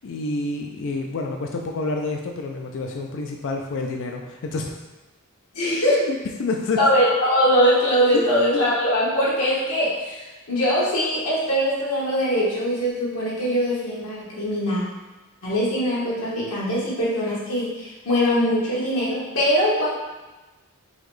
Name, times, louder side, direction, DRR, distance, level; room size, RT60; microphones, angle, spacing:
voice 1, 0.0-4.7 6.0-6.8 8.1-8.2, left 3 dB, 55° left, 2 dB, 0.4 m, -28 dB
voice 2, 5.5-6.0 6.8-14.8 15.4-19.9, equal, 75° left, -7 dB, 1.3 m, -22 dB
3.9 x 3.0 x 3.1 m, 1.1 s
head